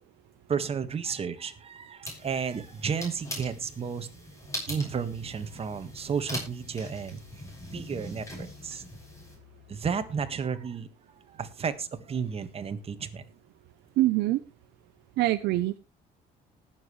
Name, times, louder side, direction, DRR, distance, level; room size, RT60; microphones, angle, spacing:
voice 1, 0.5-4.1 4.7-7.2 7.7-8.8 9.7-10.9 11.4-13.2, right 6 dB, 35° right, 9 dB, 1.7 m, -32 dB
sound 1, 2.0-9.4, left 1 dB, 20° left, 6.9 m, -41 dB
Musical instrument, 4.8-10.5, left 11 dB, ahead, 7.7 m, -55 dB
voice 2, 14.0-14.4 15.2-15.8, right 16 dB, 80° right, 9 dB, 0.8 m, -24 dB
19.5 x 7.5 x 3.2 m, 0.26 s
cardioid pair, 110°, 17 cm